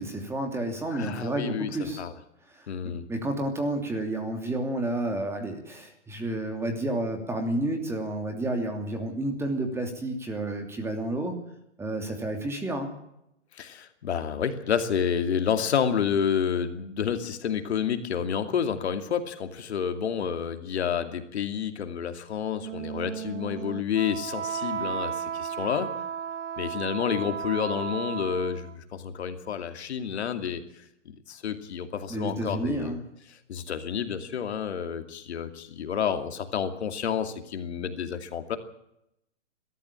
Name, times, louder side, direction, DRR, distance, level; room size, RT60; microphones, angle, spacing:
voice 1, 0.0-2.0 2.5-11.4 11.8-12.9 32.1-33.1, right 1 dB, 5° right, 4 dB, 2.9 m, -30 dB
voice 2, 0.9-2.1 2.7-3.0 13.5-25.9 26.6-30.8 31.3-33.0 33.3-38.6, left 8 dB, 65° left, 7 dB, 2.6 m, -29 dB
Wind instrument woodwind instrument, 22.5-28.8, right 8 dB, 85° right, 0.8 m, -34 dB
21.5 x 13.5 x 9.0 m, 0.80 s
hypercardioid pair, 140°, 35 cm